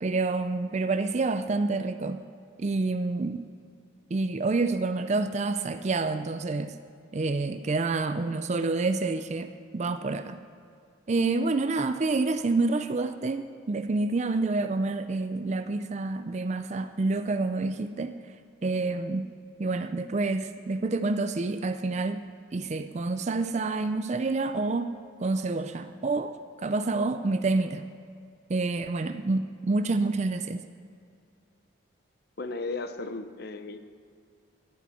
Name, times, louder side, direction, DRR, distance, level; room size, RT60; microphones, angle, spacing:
voice 1, 0.0-2.2 2.6-3.4 4.1-6.7 7.1-10.4 11.1-18.1 18.6-19.3 19.6-22.2 22.5-24.9 25.2-26.3 26.6-27.8 28.5-30.6, right 3 dB, 35° right, 9 dB, 0.4 m, -28 dB
voice 2, 32.4-33.8, left 3 dB, 50° left, 9 dB, 0.7 m, -35 dB
14.0 x 10.5 x 4.3 m, 2.4 s
head